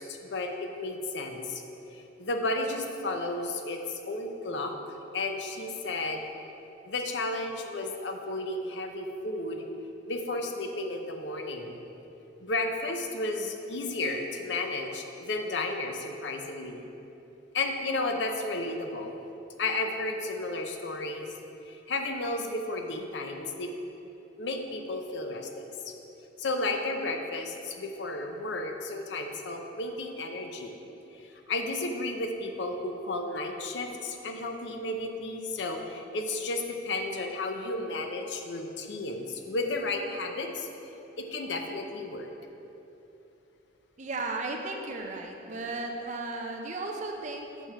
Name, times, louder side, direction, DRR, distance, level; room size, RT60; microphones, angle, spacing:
voice 1, 0.0-1.6 1.9-4.7 5.1-6.2 6.9-9.7 10.1-11.8 12.4-16.9 17.5-19.1 19.6-21.4 21.6-23.7 24.4-25.9 26.4-30.8 31.1-40.7 41.2-42.3, left 2 dB, 65° left, 4 dB, 0.6 m, -33 dB
voice 2, 44.0-47.7, right 2 dB, 40° right, 2 dB, 0.6 m, -35 dB
6.9 x 4.4 x 5.6 m, 3.0 s
head